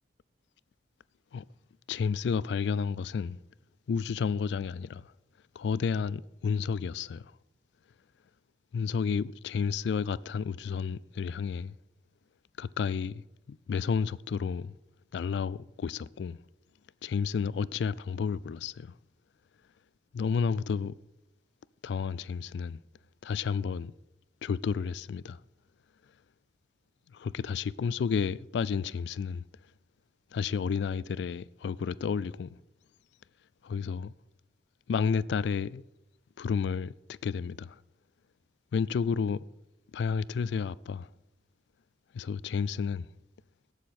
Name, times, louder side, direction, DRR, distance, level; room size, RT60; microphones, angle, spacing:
voice 1, 1.9-3.4 3.9-5.1 5.6-7.3 8.7-11.7 12.6-13.2 13.5-14.7 15.1-16.4 17.0-18.9 20.1-20.9 21.8-22.8 23.2-23.9 24.4-25.4 27.1-29.4 30.3-32.6 33.6-34.1 34.9-35.8 36.4-37.8 38.7-39.5 39.9-41.1 42.1-43.1, left 6 dB, 70° left, 0.3 m, -31 dB
17.5 x 6.6 x 4.2 m
head